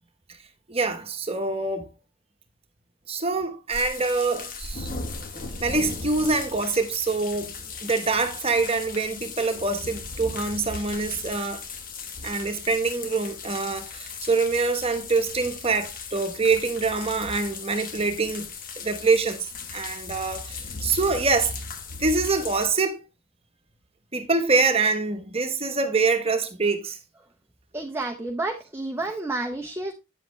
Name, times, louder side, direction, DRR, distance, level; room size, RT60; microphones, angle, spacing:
voice 1, 0.7-1.9 3.1-5.1 5.6-7.5 7.8-11.6 12.2-18.5 18.8-19.5 19.7-21.5 22.0-23.0 24.1-27.0, right 3 dB, 25° right, 1.1 m, -25 dB
sound 1, 3.7-22.7, left 4 dB, 40° left, 1.2 m, -37 dB
voice 2, 27.7-29.9, right 2 dB, 10° right, 0.7 m, -30 dB
9.2 x 7.8 x 3.2 m
head